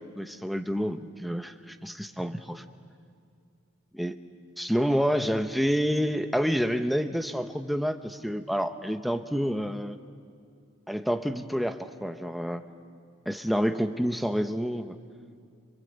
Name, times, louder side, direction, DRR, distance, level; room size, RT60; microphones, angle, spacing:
voice 1, 0.2-2.6 4.0-4.1 4.6-10.0 10.9-12.6 13.3-15.0, equal, ahead, 7 dB, 0.9 m, -28 dB
28.0 x 25.5 x 8.1 m, 2.3 s
head